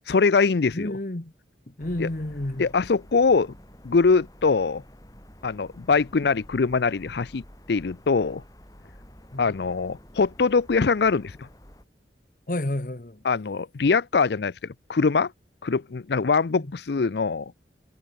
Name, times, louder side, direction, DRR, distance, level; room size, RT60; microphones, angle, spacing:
voice 1, 0.1-0.9 2.0-2.1 2.6-3.5 3.8-4.8 5.4-7.4 7.7-8.4 9.4-11.5 13.2-14.5 14.9-15.3 15.6-17.5, left 4 dB, 75° left, 0.5 m, -22 dB
voice 2, 0.7-1.3 1.8-2.6 9.3-9.4 12.5-13.2 16.5-16.6, left 1 dB, 50° left, 1.3 m, -30 dB
sound 1, 1.8-11.8, equal, 20° left, 6.5 m, -49 dB
head